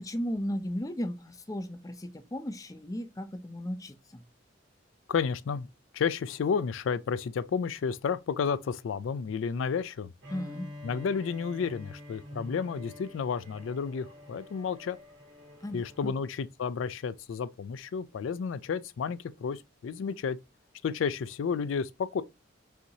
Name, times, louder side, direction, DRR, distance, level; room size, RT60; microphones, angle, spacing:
voice 1, 0.0-4.2 10.3-10.7 15.6-16.1, equal, 20° left, 0.5 m, -35 dB
voice 2, 5.1-5.7 5.9-10.1 10.8-15.0 15.7-20.4 20.8-22.2, left 6 dB, 85° left, 0.4 m, -31 dB
Bowed string instrument, 10.2-16.2, left 1 dB, 75° right, 2.5 m, -47 dB
5.6 x 2.9 x 2.7 m
head